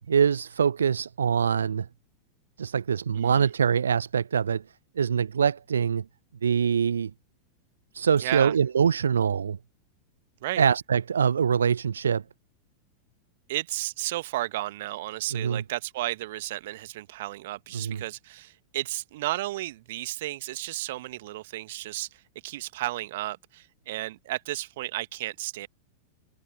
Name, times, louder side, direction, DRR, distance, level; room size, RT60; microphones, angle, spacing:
voice 1, 0.1-1.9 2.6-4.6 5.0-6.0 6.4-7.1 7.9-9.6 10.6-12.2 15.3-15.6 17.7-18.0, right 7 dB, 70° right, 0.6 m, -24 dB
voice 2, 3.1-3.5 8.2-8.5 10.4-10.6 13.5-22.1 22.4-25.7, right 16 dB, 55° right, 1.7 m, -33 dB
figure-of-eight pair, 90°, 0 cm